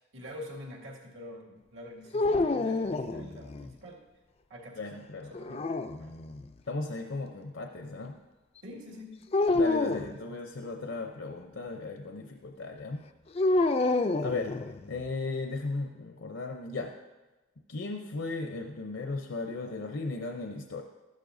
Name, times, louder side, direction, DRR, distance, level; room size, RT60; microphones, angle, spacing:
voice 1, 0.1-4.0 4.5-4.8 5.3-5.6 6.0-6.1 8.6-9.3 9.9-10.3, left 1 dB, 80° right, -1 dB, 2.1 m, -46 dB
sound 1, 2.1-3.7 5.3-6.5 9.3-10.1 13.4-15.0, left 2 dB, 30° left, 0.3 m, -28 dB
voice 2, 4.8-5.6 6.7-8.1 9.5-13.0 14.2-14.5 14.9-16.9 17.7-20.8, left 3 dB, 70° left, 3 dB, 0.6 m, -36 dB
13.5 x 11.5 x 2.6 m, 1.1 s
head